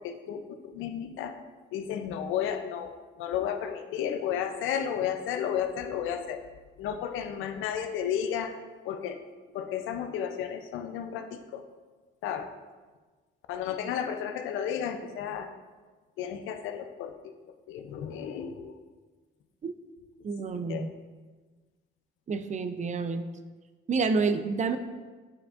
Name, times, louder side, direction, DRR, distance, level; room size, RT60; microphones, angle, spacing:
voice 1, 0.0-1.4 1.7-6.4 6.8-8.6 8.8-9.2 9.5-11.6 12.2-12.5 13.5-15.5 16.2-17.3 17.7-18.8 20.7-20.9, left 8 dB, 90° left, 8 dB, 0.5 m, -33 dB
voice 2, 20.2-20.9 22.3-23.2 23.9-24.8, right 4 dB, 35° right, 9 dB, 0.5 m, -28 dB
8.6 x 4.7 x 2.5 m, 1.3 s
cardioid pair, 90°, 20 cm